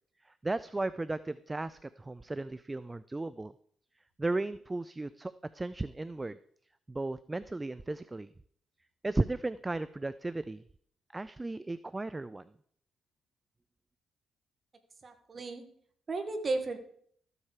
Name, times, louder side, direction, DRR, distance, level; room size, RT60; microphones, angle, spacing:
voice 1, 0.2-3.5 4.2-6.4 6.9-8.3 9.0-10.6 11.1-12.5, right 2 dB, 15° right, 15 dB, 0.4 m, -35 dB
voice 2, 15.0-15.6 16.1-16.8, right 3 dB, 35° right, 7 dB, 1.7 m, -34 dB
13.5 x 7.3 x 4.9 m, 0.62 s
cardioid pair, 90°, 0 cm